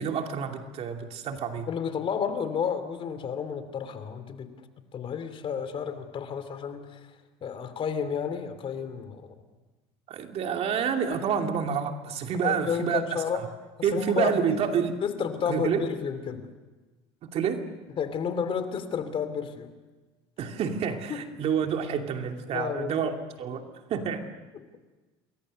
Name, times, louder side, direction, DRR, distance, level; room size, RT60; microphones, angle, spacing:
voice 1, 0.0-1.7 10.1-13.4 13.8-15.0 15.5-15.9 17.2-17.6 20.4-23.1 23.4-24.2, right 7 dB, 50° right, 4 dB, 2.7 m, -28 dB
voice 2, 1.7-4.6 4.9-7.1 7.4-9.3 12.4-13.4 13.8-16.5 18.0-19.7 21.1-21.3 22.5-23.1 24.5-24.7, left 7 dB, 45° left, 10 dB, 2.8 m, -31 dB
28.0 x 22.0 x 6.5 m, 1.2 s
supercardioid pair, 95°, 13 cm